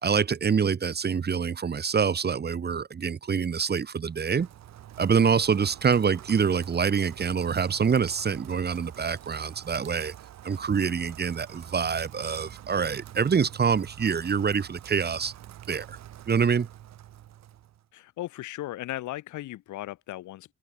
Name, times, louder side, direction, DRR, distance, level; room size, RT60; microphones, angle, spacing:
voice 1, 0.0-4.5 5.0-10.1 10.4-15.3 15.7-16.0 16.3-16.7, right 6 dB, 35° right, 1.1 m, -26 dB
Rain, 4.0-17.9, right 12 dB, 60° right, 1.1 m, -47 dB
voice 2, 17.9-20.5, left 15 dB, 75° left, 0.9 m, -37 dB
cardioid pair, 90°, 30 cm